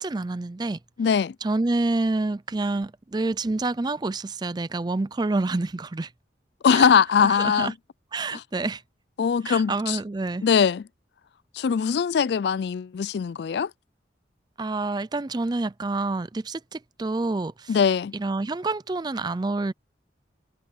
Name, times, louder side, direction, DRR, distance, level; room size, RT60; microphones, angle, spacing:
voice 1, 0.0-0.8 1.4-6.1 6.7-6.9 7.2-7.7 8.1-8.8 9.5-10.4 14.6-17.7 18.1-19.7, right 2 dB, 20° right, 0.4 m, -28 dB
voice 2, 1.0-1.4 6.6-7.7 8.3-8.4 9.2-10.0 10.4-10.8 11.5-13.7 17.7-18.1, left 6 dB, 60° left, 0.3 m, -21 dB
head